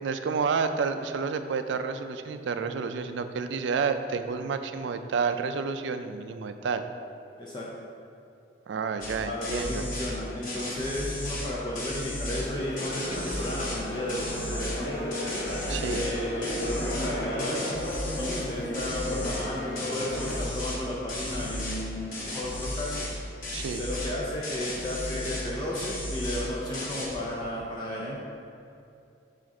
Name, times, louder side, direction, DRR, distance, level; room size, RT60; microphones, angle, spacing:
voice 1, 0.0-6.9 8.7-9.9 15.7-16.1 23.5-23.8, right 5 dB, 80° right, 9 dB, 0.3 m, -30 dB
voice 2, 7.4-7.7 9.2-15.2 15.9-17.7 18.2-22.9 23.8-28.2, left 1 dB, 25° left, -5 dB, 0.5 m, -33 dB
sound 1, 9.0-9.2 9.4-10.2 10.4-12.5 12.8-13.8 14.1-14.8 15.1-16.1 16.4-18.5 18.7-19.5 19.8-20.8 21.1-21.8 22.1-23.2 23.4-24.1 24.4-25.5 25.7-26.5 26.7-27.2, left 1 dB, 45° left, 1.0 m, -34 dB
sound 2, 12.3-20.4, left 1 dB, 75° left, 0.7 m, -35 dB
Marimba xylophone, 16.1-21.6, left 1 dB, 20° right, 0.8 m, -42 dB
7.4 x 2.5 x 5.2 m, 2.7 s
head